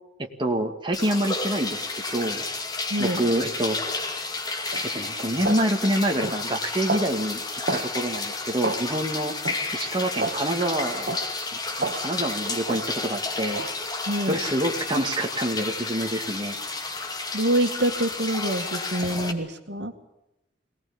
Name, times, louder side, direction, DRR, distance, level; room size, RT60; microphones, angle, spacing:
voice 1, 0.2-1.8 2.1-2.4 3.0-3.8 4.8-7.4 7.7-9.3 9.7-11.1 11.8-13.6 14.3-16.6, right 1 dB, 25° right, 3 dB, 2.2 m, -26 dB
sound 1, 0.9-19.3, left 3 dB, 20° left, 2.5 m, -31 dB
voice 2, 2.9-3.2 14.1-14.4 17.3-19.9, right 1 dB, 70° right, 6 dB, 2.2 m, -26 dB
sound 2, 4.7-4.9 5.4-5.7 6.2-6.4 6.9-7.1 7.7-7.9 8.6-8.8 9.4-9.6 10.2-10.4 11.1-11.3 11.8-12.1 12.7-12.9 13.6-13.8, right 3 dB, 55° right, 1.7 m, -29 dB
23.5 x 18.5 x 8.9 m, 0.88 s
head